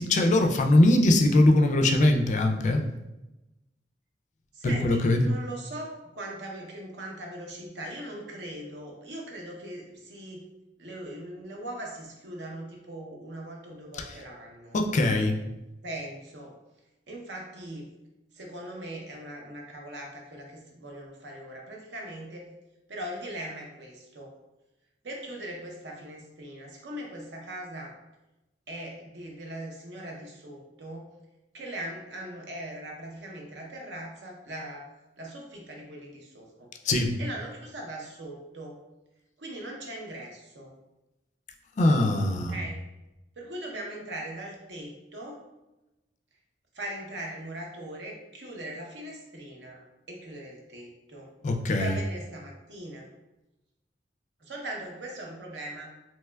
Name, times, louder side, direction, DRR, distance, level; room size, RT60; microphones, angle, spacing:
voice 1, 0.0-2.8 4.6-5.3 13.9-14.0 14.7-15.4 36.8-37.2 41.8-42.6 51.4-52.0, left 1 dB, 45° left, 4 dB, 0.3 m, -22 dB
voice 2, 4.5-10.4 10.8-14.8 15.8-16.5 17.1-17.9 18.3-22.5 22.9-24.3 25.0-27.9 28.7-31.1 31.5-34.9 35.2-36.7 37.2-38.8 39.4-40.7 42.5-42.8 43.4-45.4 46.7-51.3 51.7-53.1 54.4-55.9, right 1 dB, 70° right, 0 dB, 0.7 m, -40 dB
3.3 x 3.0 x 2.2 m, 0.99 s
head